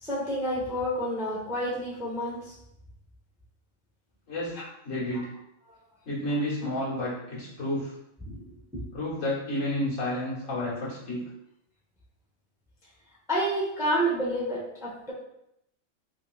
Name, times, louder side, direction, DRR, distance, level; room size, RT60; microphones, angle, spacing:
voice 1, 0.0-2.5 4.6-4.7 8.3-8.8 13.3-15.1, equal, 5° right, -5 dB, 0.5 m, -29 dB
voice 2, 4.8-5.3 6.1-7.9 8.9-11.3, left 1 dB, 75° left, -7 dB, 1.6 m, -30 dB
3.5 x 2.8 x 2.3 m, 0.79 s
omnidirectional pair, 1.4 m